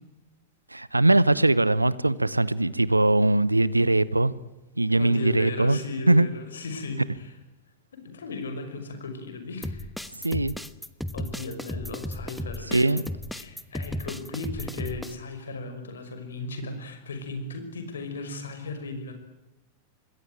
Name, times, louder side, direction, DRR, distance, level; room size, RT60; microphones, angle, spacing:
voice 1, 0.7-4.3 4.8-5.8 6.1-6.3 10.1-10.5 12.7-13.0, right 2 dB, 85° right, 21 dB, 0.9 m, -21 dB
voice 2, 4.9-7.3 7.9-9.9 11.1-13.0 13.3-19.1, left 3 dB, 70° left, 7 dB, 5.6 m, -36 dB
sound 1, 9.6-15.1, left 1 dB, ahead, 1.2 m, -35 dB
26.5 x 21.0 x 9.1 m, 1.0 s
figure-of-eight pair, 90°, 0 cm